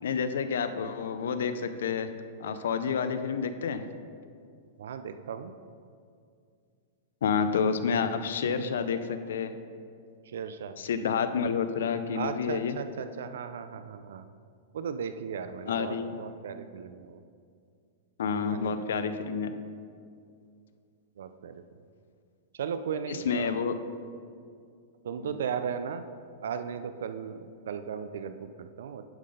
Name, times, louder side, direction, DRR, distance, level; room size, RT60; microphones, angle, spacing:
voice 1, 0.0-2.1 2.4-3.8 7.2-9.5 10.8-12.8 15.7-16.2 18.2-19.5 23.1-23.7 25.2-25.4, left 6 dB, 85° left, 10 dB, 0.5 m, -29 dB
voice 2, 4.8-5.6 10.3-10.8 12.1-14.2 14.7-17.2 18.3-18.8 21.2-21.6 22.5-23.6 25.0-26.0 26.4-29.1, right 7 dB, 85° right, 10 dB, 0.3 m, -36 dB
10.5 x 3.9 x 5.0 m, 2.3 s
supercardioid pair, 145°, 0 cm